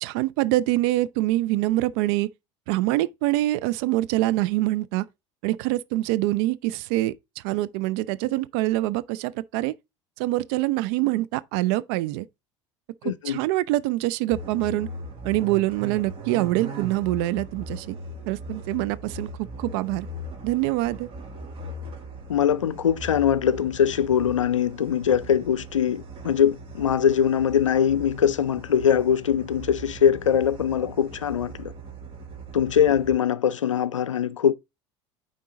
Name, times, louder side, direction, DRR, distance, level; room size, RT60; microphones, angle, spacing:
voice 1, 0.0-2.3 2.7-5.1 5.4-9.7 10.2-12.3 13.2-14.9 15.2-18.0 18.3-20.1 20.4-21.1, right 17 dB, 55° right, 0.5 m, -25 dB
voice 2, 13.0-13.4 22.3-31.7 32.5-34.5, left 8 dB, 80° left, 0.4 m, -22 dB
sound 1, 14.3-33.1, right 1 dB, 35° right, 1.8 m, -39 dB
9.1 x 3.7 x 3.8 m
figure-of-eight pair, 70°, 16 cm